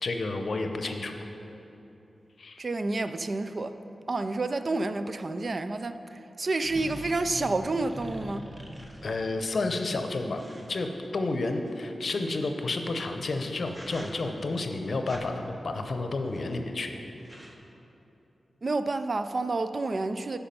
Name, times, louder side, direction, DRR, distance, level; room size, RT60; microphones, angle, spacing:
voice 1, 0.0-1.1 2.4-2.6 9.0-10.4 10.7-16.9, left 2 dB, 65° left, 6 dB, 0.6 m, -31 dB
voice 2, 2.6-3.7 4.1-8.4 18.6-20.4, right 2 dB, 50° right, 10 dB, 0.4 m, -29 dB
sound 1, 6.6-9.5 10.4-11.7 13.1-13.3 13.7-14.4 15.1-15.3 16.2-16.6 16.9-17.0 17.2-17.5, equal, 20° right, 1.1 m, -44 dB
8.5 x 5.6 x 5.4 m, 3.0 s
cardioid pair, 55°, 0 cm